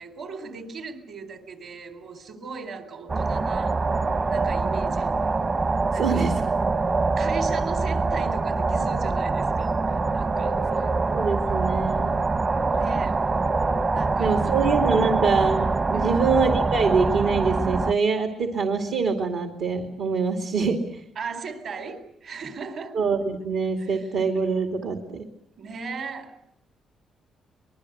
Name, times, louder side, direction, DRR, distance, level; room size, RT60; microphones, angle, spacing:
voice 1, 0.0-3.8 4.3-5.1 5.9-6.3 7.2-10.9 12.7-13.2 13.9-14.6 15.9-16.2 21.2-23.0 23.8-24.1 25.6-26.3, right 4 dB, 65° right, 3.8 m, -37 dB
sound 1, 3.1-17.9, right 3 dB, 35° right, 1.0 m, -24 dB
voice 2, 5.9-6.4 11.1-12.3 14.2-21.0 22.9-25.3, right 4 dB, 80° right, 2.5 m, -24 dB
25.0 x 21.0 x 7.9 m
cardioid pair, 90°, 0 cm